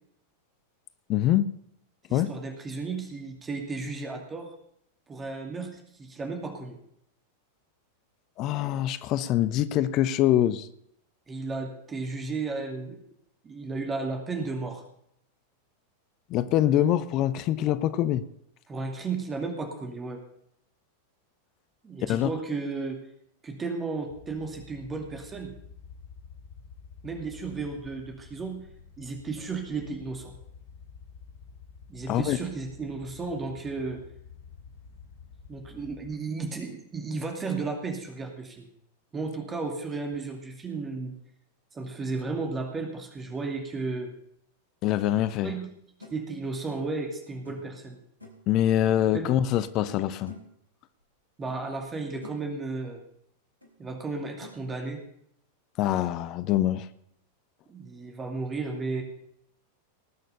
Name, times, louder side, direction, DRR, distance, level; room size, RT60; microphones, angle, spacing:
voice 1, 1.1-1.5 2.1-2.3 8.4-10.7 16.3-18.2 22.0-22.3 32.1-32.4 44.8-45.5 48.5-50.3 55.8-56.9, left 12 dB, 40° left, 0.7 m, -24 dB
voice 2, 2.1-4.5 5.1-6.8 11.3-13.0 13.4-14.8 18.7-20.2 21.8-23.0 23.4-25.6 27.0-28.7 29.0-30.3 31.9-34.0 35.5-38.7 39.1-41.2 41.7-44.1 45.4-45.7 46.1-48.0 49.1-49.3 51.4-53.0 53.8-55.0 57.7-59.0, right 3 dB, 20° right, 2.5 m, -34 dB
sound 1, 24.1-36.1, left 5 dB, 60° left, 1.9 m, -49 dB
sound 2, 46.0-46.2 47.4-47.8 48.2-48.5 49.5-49.9 50.3-50.6 51.5-51.6 52.0-52.4 53.6-53.7 54.4-54.6, left 2 dB, 85° right, 3.3 m, -47 dB
19.0 x 6.6 x 6.8 m
figure-of-eight pair, 90°, 0 cm